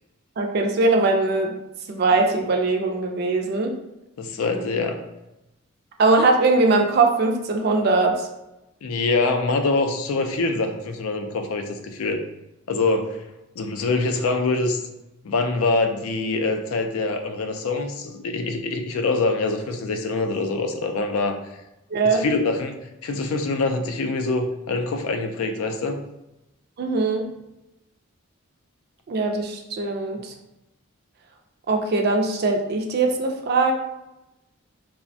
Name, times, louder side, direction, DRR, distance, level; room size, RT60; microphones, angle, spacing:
voice 1, 0.4-1.5 1.9-3.7 6.0-8.3 21.9-22.3 26.8-27.3 29.1-30.3 31.7-33.7, right 3 dB, 45° right, 3 dB, 0.3 m, -21 dB
voice 2, 4.2-5.0 8.8-12.2 12.7-13.2 13.6-14.8 15.2-21.4 22.0-26.0, left 3 dB, 85° left, 6 dB, 0.4 m, -24 dB
3.3 x 2.1 x 2.6 m, 0.93 s
head